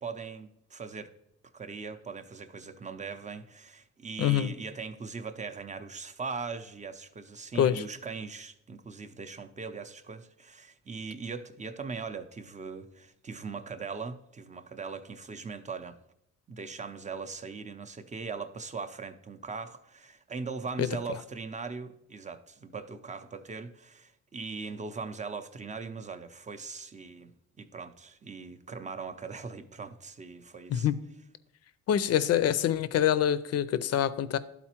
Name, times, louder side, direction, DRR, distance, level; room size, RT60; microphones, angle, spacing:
voice 1, 0.0-1.1 1.5-16.0 16.5-30.9, right 4 dB, 25° right, 0.5 m, -40 dB
voice 2, 4.2-4.5 7.6-7.8 20.8-20.9 30.7-31.0 31.9-34.4, left 10 dB, 55° left, 0.5 m, -25 dB
12.0 x 4.1 x 2.9 m
cardioid pair, 90°, 30 cm